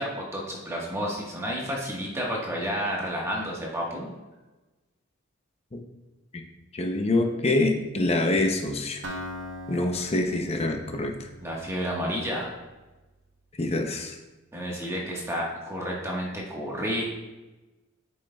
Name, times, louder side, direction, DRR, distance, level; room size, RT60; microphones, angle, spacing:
voice 1, 0.0-4.1 11.4-12.5 14.5-17.1, equal, 15° right, -3 dB, 1.4 m, -31 dB
voice 2, 6.7-9.0 9.7-11.3 13.6-14.2, left 2 dB, 30° left, 4 dB, 0.7 m, -25 dB
Acoustic guitar, 9.0-12.9, equal, 60° right, 0.8 m, -41 dB
8.1 x 6.3 x 2.3 m, 1.1 s
head